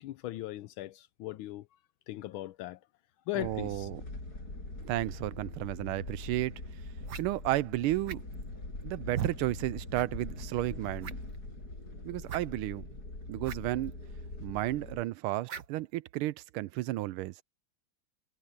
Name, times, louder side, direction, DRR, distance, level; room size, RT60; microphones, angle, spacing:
voice 1, 0.0-1.7 2.1-2.8 3.3-3.9, left 15 dB, 80° left, 1.4 m, -38 dB
voice 2, 3.3-4.0 4.8-6.5 7.2-8.2 8.8-11.1 12.0-12.8 13.3-13.9 14.4-17.3, right 17 dB, 85° right, 1.5 m, -33 dB
sound 1, 3.4-15.0, left 2 dB, 45° left, 7.4 m, -43 dB
sound 2, 6.2-6.3 7.0-7.3 8.0-8.4 9.1-9.4 9.9-10.1 10.4-10.5 11.0-11.4 12.3-12.5 13.4-13.6 13.8-13.9 15.5-15.7, right 9 dB, 60° right, 1.6 m, -37 dB
omnidirectional pair, 2.3 m